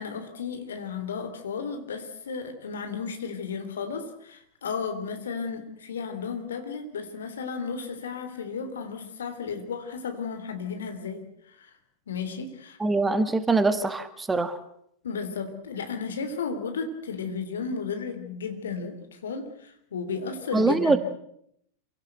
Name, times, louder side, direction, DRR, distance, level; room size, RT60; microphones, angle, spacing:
voice 1, 0.0-11.7 12.1-12.8 15.0-21.0, left 5 dB, 65° left, 7 dB, 3.3 m, -34 dB
voice 2, 12.8-14.6 20.5-21.0, right 3 dB, 10° right, 12 dB, 1.6 m, -23 dB
27.0 x 17.5 x 8.0 m, 0.72 s
figure-of-eight pair, 90°, 0 cm